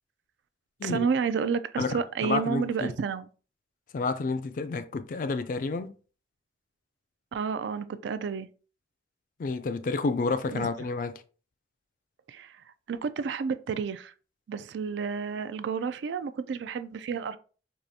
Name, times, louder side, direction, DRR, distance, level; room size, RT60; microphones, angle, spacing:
voice 1, 0.8-3.3 7.3-8.5 10.5-10.7 12.3-12.6 12.9-14.1 14.5-17.4, right 6 dB, 80° right, 0.3 m, -30 dB
voice 2, 1.8-2.9 3.9-5.9 9.4-11.1, left 4 dB, 45° left, 0.3 m, -30 dB
4.7 x 2.4 x 2.6 m
head